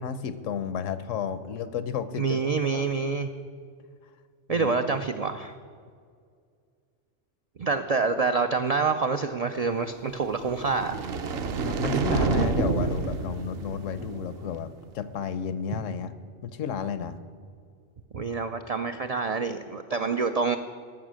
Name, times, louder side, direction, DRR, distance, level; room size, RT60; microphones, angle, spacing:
voice 1, 0.0-2.4 2.7-2.9 4.5-5.0 11.6-16.1 16.4-17.2, left 7 dB, 85° left, 13 dB, 1.1 m, -32 dB
voice 2, 2.2-3.3 4.5-5.5 7.6-10.9 18.1-20.6, right 4 dB, 90° right, 8 dB, 0.3 m, -27 dB
sound 1, 10.3-14.5, right 4 dB, 60° right, 0.9 m, -28 dB
13.5 x 6.5 x 6.3 m, 2.2 s
omnidirectional pair, 1.3 m